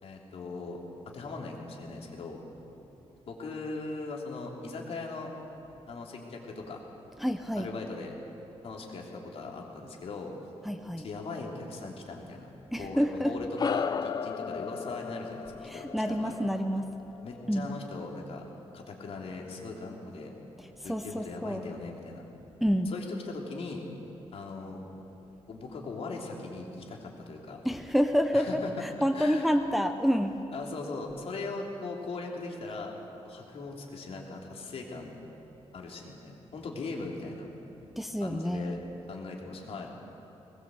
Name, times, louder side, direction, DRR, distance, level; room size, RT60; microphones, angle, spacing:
voice 1, 0.0-2.4 3.3-5.3 5.9-6.8 7.6-8.1 8.6-10.3 11.0-12.5 12.8-16.4 17.2-18.4 18.7-20.3 20.8-22.2 22.9-23.8 24.3-24.8 25.5-27.6 28.3-29.5 30.5-33.0 33.2-35.2 35.7-37.5 38.2-38.8 39.1-39.9, left 3 dB, 65° left, 0 dB, 3.3 m, -39 dB
voice 2, 7.2-7.7 10.7-11.1 12.7-13.3 15.7-16.9 17.5-17.7 20.8-21.6 22.6-22.9 27.6-30.4 38.0-38.8, equal, ahead, 6 dB, 0.8 m, -28 dB
sound 1, 13.6-18.3, left 6 dB, 35° left, 0.5 m, -36 dB
20.5 x 20.0 x 7.9 m, 3.0 s
wide cardioid pair, 145°, 11 cm